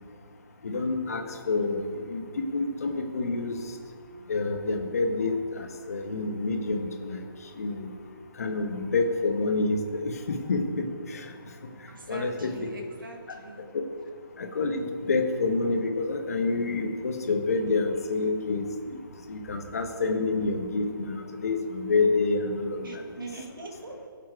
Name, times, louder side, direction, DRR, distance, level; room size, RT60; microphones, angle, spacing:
voice 1, 0.6-3.6 4.3-7.2 7.6-7.9 8.4-11.2 12.1-12.7 14.4-19.0 19.3-23.0, left 3 dB, 40° left, 4 dB, 1.5 m, -28 dB
voice 2, 11.9-13.7 15.2-15.3 22.8-24.1, right 3 dB, 60° right, 2 dB, 2.3 m, -42 dB
16.0 x 7.6 x 4.9 m, 2.1 s
hypercardioid pair, 175°, 13 cm